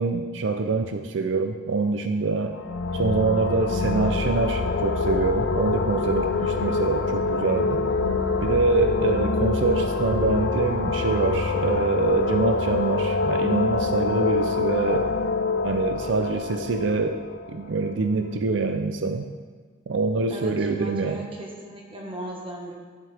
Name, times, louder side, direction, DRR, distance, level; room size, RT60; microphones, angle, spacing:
voice 1, 0.0-2.6 2.9-7.8 8.4-15.1 15.6-17.2 17.5-19.3 19.9-21.2, right 3 dB, 75° right, 6 dB, 0.5 m, -25 dB
sound 1, 2.5-18.0, left 4 dB, 85° left, 0.6 m, -25 dB
voice 2, 20.3-22.7, right 1 dB, 30° right, -1 dB, 1.4 m, -37 dB
11.5 x 7.3 x 3.4 m, 1.5 s
head